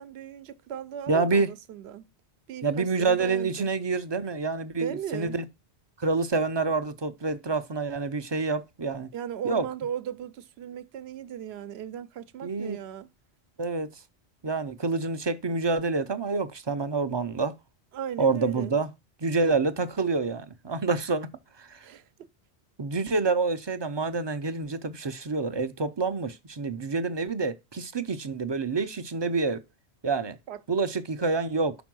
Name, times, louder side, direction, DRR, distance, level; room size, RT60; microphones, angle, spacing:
voice 1, 0.0-2.1 2.5-3.7 4.8-5.4 9.1-13.1 17.9-18.8 21.8-22.3 30.5-30.6, right 9 dB, 70° right, 0.9 m, -37 dB
voice 2, 1.1-1.5 2.6-5.4 6.0-9.1 9.4-9.7 12.4-12.8 13.6-14.0 14.4-17.5 18.2-18.9 19.2-21.3 21.6-21.9 22.8-29.6 30.0-30.4 30.7-31.8, right 4 dB, 35° right, 0.4 m, -27 dB
6.0 x 4.5 x 6.0 m
omnidirectional pair, 1.1 m